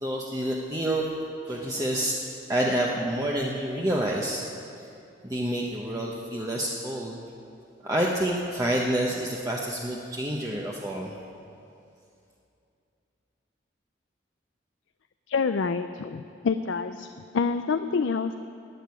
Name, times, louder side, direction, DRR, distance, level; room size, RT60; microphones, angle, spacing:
voice 1, 0.0-1.0 1.4-2.2 2.5-4.4 5.2-7.2 7.8-11.1, right 1 dB, 20° right, -2 dB, 0.8 m, -28 dB
voice 2, 15.3-17.1 17.3-18.4, left 5 dB, 80° left, 10 dB, 0.4 m, -27 dB
12.0 x 8.9 x 9.5 m, 2.6 s
head